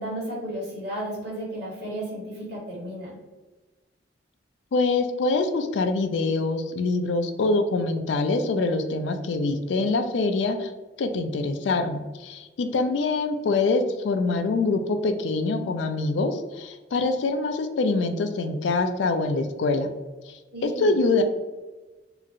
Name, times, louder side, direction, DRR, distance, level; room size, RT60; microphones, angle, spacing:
voice 1, 0.0-3.2 20.5-21.1, right 1 dB, 65° right, -6 dB, 1.3 m, -33 dB
voice 2, 4.7-10.7 11.0-19.9 20.3-21.2, left 3 dB, 75° left, 7 dB, 0.3 m, -25 dB
2.9 x 2.4 x 2.6 m, 1.2 s
head